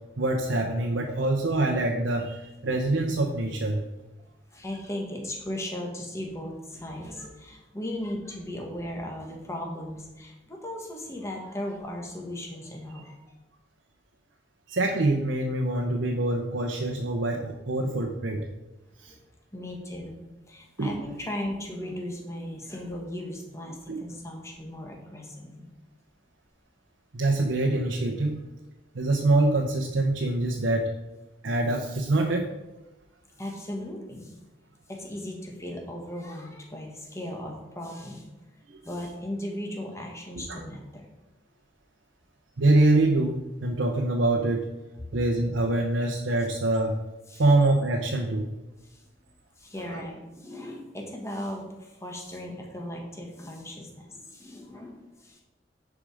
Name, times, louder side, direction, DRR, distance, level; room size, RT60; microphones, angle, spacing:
voice 1, 0.2-3.8 14.7-18.5 19.0-19.1 20.8-21.0 23.9-24.0 27.1-28.4 28.9-30.9 31.4-32.5 38.7-38.8 40.5-40.6 42.6-44.7 45.1-47.0 47.4-48.4 49.9-50.0, right 2 dB, 85° right, 2 dB, 0.9 m, -25 dB
voice 2, 4.5-13.2 19.0-19.2 19.5-20.2 20.5-25.7 33.4-34.3 34.9-38.3 38.8-41.0 47.3-47.4 48.8-49.0 49.6-55.4, left 1 dB, 15° left, 0 dB, 1.5 m, -37 dB
10.0 x 4.9 x 4.9 m, 1.0 s
head